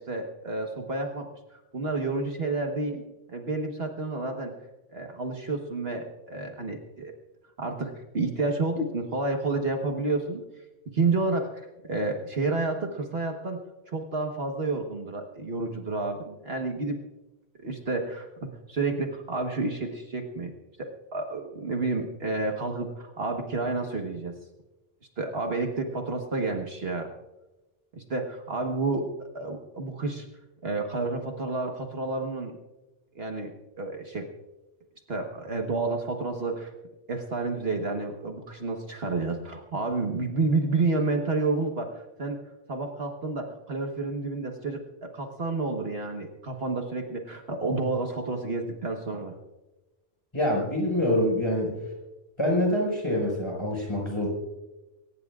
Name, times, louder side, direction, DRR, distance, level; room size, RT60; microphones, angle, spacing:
voice 1, 0.0-3.0 3.3-4.5 4.9-7.1 7.6-10.4 10.9-13.6 13.9-17.0 17.6-18.3 18.7-20.5 20.8-24.3 25.2-27.1 27.9-30.3 30.6-32.6 33.1-34.3 35.1-36.7 37.1-42.4 42.7-49.4, right 3 dB, 55° right, 3 dB, 1.5 m, -30 dB
voice 2, 50.3-51.7 52.4-54.3, left 1 dB, 25° left, -1 dB, 5.3 m, -25 dB
23.0 x 19.0 x 2.4 m, 1.1 s
omnidirectional pair, 1.2 m